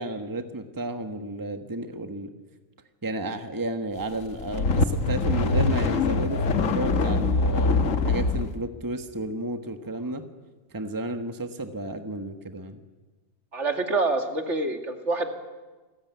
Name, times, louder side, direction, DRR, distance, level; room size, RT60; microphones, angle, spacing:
voice 1, 0.0-2.3 3.0-10.2 10.7-12.8, right 2 dB, 15° right, 7 dB, 1.4 m, -32 dB
sound 1, 4.2-8.5, left 3 dB, 75° left, 1.7 m, -23 dB
voice 2, 13.5-15.3, right 3 dB, 60° right, 5 dB, 2.7 m, -26 dB
28.5 x 20.5 x 9.5 m, 1.3 s
omnidirectional pair, 1.4 m